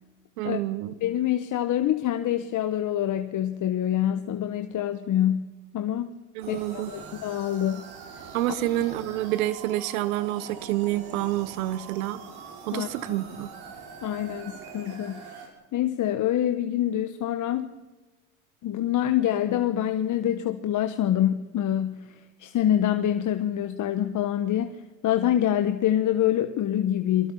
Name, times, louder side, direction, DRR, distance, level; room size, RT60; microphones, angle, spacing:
voice 1, 0.4-0.9 6.3-6.9 8.3-12.2 12.7-13.5, right 15 dB, 85° right, 16 dB, 1.2 m, -28 dB
voice 2, 1.0-6.1 6.5-7.8 12.7-12.9 14.0-15.3 15.7-17.7 18.6-22.1 22.4-24.8 25.0-27.3, left 11 dB, 45° left, 8 dB, 1.3 m, -26 dB
sound 1, 6.4-15.5, right 5 dB, 65° right, 5.8 m, -43 dB
23.5 x 23.0 x 5.6 m, 1.1 s
supercardioid pair, 90°, 41 cm